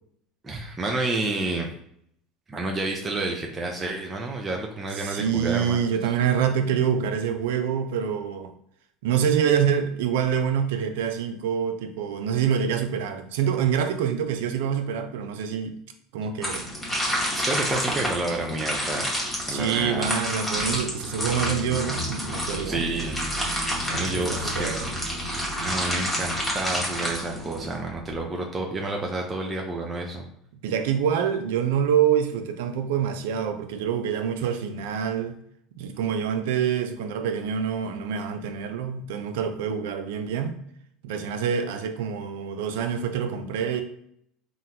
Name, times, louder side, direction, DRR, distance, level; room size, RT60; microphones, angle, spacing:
voice 1, 0.4-1.7 2.5-5.8 17.3-19.1 19.5-20.1 22.6-23.2 23.9-24.7 25.6-30.3, right 2 dB, 20° right, 0.5 m, -29 dB
voice 2, 5.0-8.5 9.0-15.8 16.1-16.7 19.5-22.9 23.8-24.9 30.6-35.4 35.8-40.6 41.0-43.8, right 8 dB, 85° right, 0.4 m, -26 dB
sound 1, 16.4-27.8, equal, 10° left, 1.0 m, -29 dB
sound 2, 21.1-28.3, equal, 45° right, 0.9 m, -37 dB
3.7 x 2.1 x 2.8 m
supercardioid pair, 120°, 0 cm